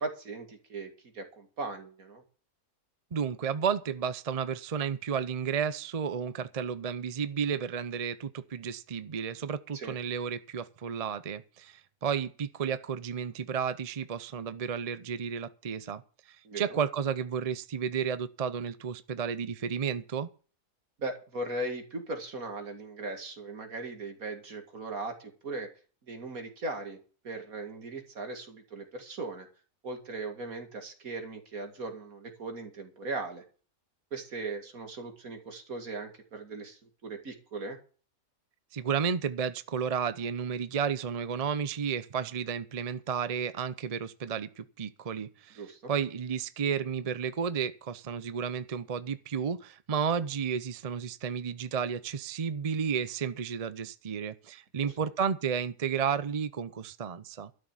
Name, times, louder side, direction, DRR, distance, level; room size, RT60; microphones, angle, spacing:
voice 1, 0.0-2.2 9.7-10.0 16.4-16.8 21.0-25.7 26.0-27.0 27.2-29.5 29.8-33.4 34.1-37.8 45.6-45.9 54.8-54.9, right 2 dB, 70° right, 2.7 m, -38 dB
voice 2, 3.1-16.0 16.3-20.3 38.7-45.6 45.9-57.5, right 7 dB, 40° right, 0.6 m, -32 dB
12.5 x 6.6 x 8.9 m
omnidirectional pair, 1.5 m